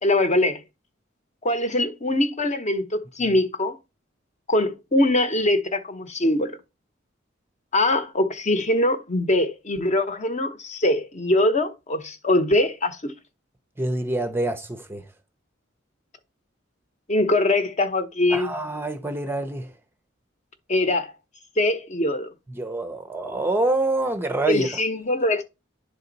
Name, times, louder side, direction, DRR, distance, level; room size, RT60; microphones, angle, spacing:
voice 1, 0.0-0.6 1.4-3.8 4.5-6.5 7.7-13.1 17.1-18.5 20.7-21.1 21.6-22.3 24.5-25.4, left 1 dB, 35° left, 0.9 m, -22 dB
voice 2, 13.8-15.0 18.3-19.7 22.5-24.7, right 2 dB, 10° right, 0.6 m, -26 dB
10.5 x 4.0 x 4.0 m
head